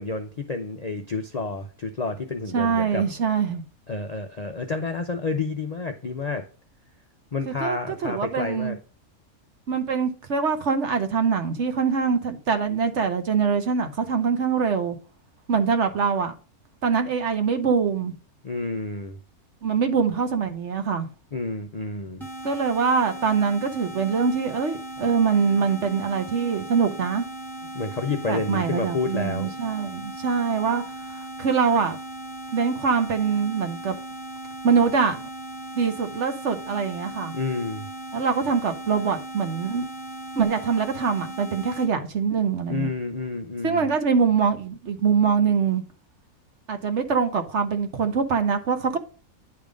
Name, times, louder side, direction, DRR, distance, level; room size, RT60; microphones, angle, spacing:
voice 1, 0.0-3.0 3.9-6.5 7.3-8.8 18.4-19.2 21.3-22.3 27.7-29.5 37.3-37.9 42.7-43.9, left 3 dB, 45° left, 0.5 m, -29 dB
voice 2, 2.5-3.6 7.5-8.8 9.7-15.0 15.5-16.4 16.8-18.1 19.6-21.1 22.4-27.3 28.3-30.8 31.1-32.0 32.5-34.0 34.6-35.2 35.8-37.3 38.1-39.8 40.4-42.9 43.6-45.8 46.7-49.0, right 6 dB, 55° right, 1.1 m, -24 dB
sound 1, 22.2-41.9, right 1 dB, ahead, 1.5 m, -38 dB
9.6 x 3.5 x 5.0 m
omnidirectional pair, 1.5 m